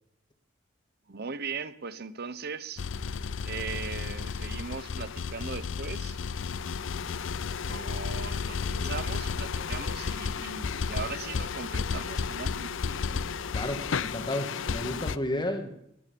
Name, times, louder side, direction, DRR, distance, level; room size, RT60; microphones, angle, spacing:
voice 1, 1.1-2.8 3.4-6.2 7.6-12.7, right 5 dB, 50° right, 15 dB, 0.9 m, -39 dB
sound 1, 1.9-15.0, right 1 dB, 90° right, 2.4 m, -53 dB
sound 2, 2.8-15.2, left 5 dB, 65° left, 0.5 m, -33 dB
voice 2, 13.5-15.7, left 1 dB, 20° left, 5 dB, 1.8 m, -32 dB
19.0 x 10.0 x 7.0 m, 0.79 s
head